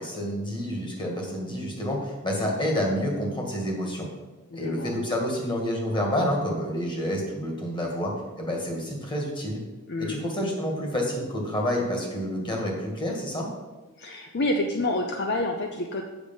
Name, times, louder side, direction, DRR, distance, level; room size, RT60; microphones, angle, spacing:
voice 1, 0.0-4.1 4.5-9.6 10.0-13.5, equal, 20° left, 0 dB, 1.8 m, -28 dB
voice 2, 4.5-5.0 9.9-10.3 14.0-16.0, left 1 dB, 50° left, 3 dB, 0.6 m, -28 dB
8.0 x 6.5 x 5.4 m, 1.2 s
head